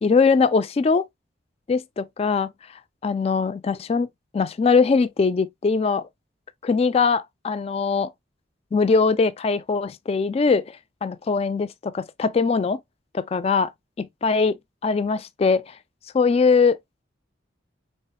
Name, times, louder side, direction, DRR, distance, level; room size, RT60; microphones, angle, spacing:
voice 1, 0.0-1.0 1.7-2.5 3.0-4.1 4.3-6.0 6.6-8.1 8.7-12.8 13.1-13.7 14.0-14.5 14.8-15.6 16.1-16.8, left 4 dB, 35° left, 0.3 m, -21 dB
5.4 x 3.6 x 2.2 m
head